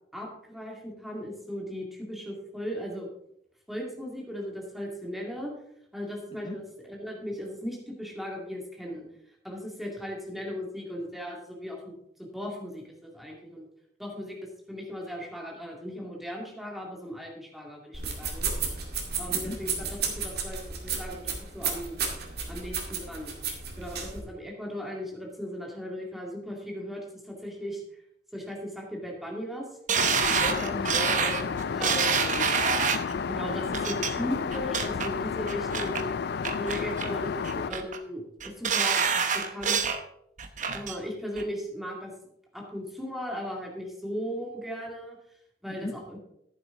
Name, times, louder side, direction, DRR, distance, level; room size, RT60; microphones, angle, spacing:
voice 1, 0.1-3.1 3.7-5.5 5.9-9.1 9.4-13.7 14.0-14.4 14.7-18.5 19.2-22.0 22.5-23.4 23.8-28.0 28.3-29.7 31.7-32.0 33.3-36.1 36.6-39.9 40.7-42.1 42.5-45.2 45.6-46.2, equal, ahead, -1 dB, 2.4 m, -37 dB
sound 1, 17.9-24.2, right 5 dB, 60° right, 2.1 m, -33 dB
Aircraft, 29.9-37.7, left 6 dB, 60° left, 0.4 m, -31 dB
sound 2, 29.9-33.1 33.7-34.1 34.5-35.1 35.5-36.0 36.4-37.1 37.4-38.0 38.4-40.0 40.4-41.0 41.4-41.5, right 6 dB, 45° right, 0.9 m, -27 dB
voice 2, 30.4-32.9 45.8-46.0, left 2 dB, 30° left, 1 dB, 1.1 m, -37 dB
11.0 x 9.7 x 3.9 m, 0.77 s
head